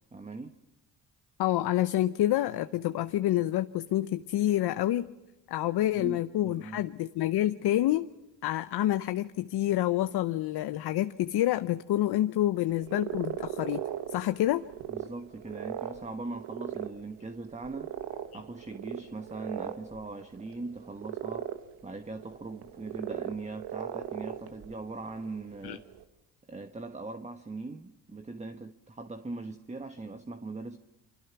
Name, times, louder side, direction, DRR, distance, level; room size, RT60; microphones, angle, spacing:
voice 1, 0.1-0.5 5.9-6.9 14.9-17.9 18.3-21.6 21.8-25.8 26.5-30.8, right 3 dB, 15° right, 8 dB, 1.4 m, -40 dB
voice 2, 1.4-5.1 5.5-8.1 8.4-13.8 14.1-14.6 25.6-25.8, left 14 dB, 75° left, 11 dB, 0.9 m, -28 dB
sound 1, 12.7-26.0, right 11 dB, 80° right, 1.7 m, -39 dB
28.5 x 25.0 x 6.0 m, 0.91 s
cardioid pair, 80°, 40 cm